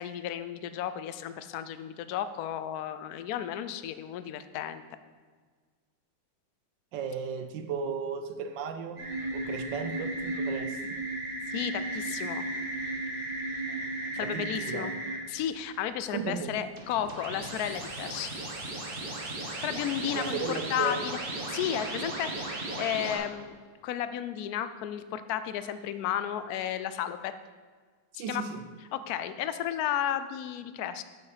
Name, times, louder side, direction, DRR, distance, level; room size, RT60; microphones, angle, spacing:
voice 1, 0.0-4.8 11.5-12.4 14.1-14.9 15.3-18.3 19.6-21.2 21.5-23.6 23.8-27.3 28.1-28.4 28.9-31.0, left 10 dB, 70° left, 12 dB, 0.9 m, -33 dB
voice 2, 6.9-9.0 9.3-11.0 14.2-14.9 16.1-16.7 20.1-21.0 28.2-28.7, right 6 dB, 80° right, 9 dB, 1.4 m, -35 dB
sound 1, 9.0-15.2 16.7-23.2, right 2 dB, 30° right, 1.3 m, -35 dB
8.4 x 7.1 x 5.0 m, 1.5 s
omnidirectional pair, 2.0 m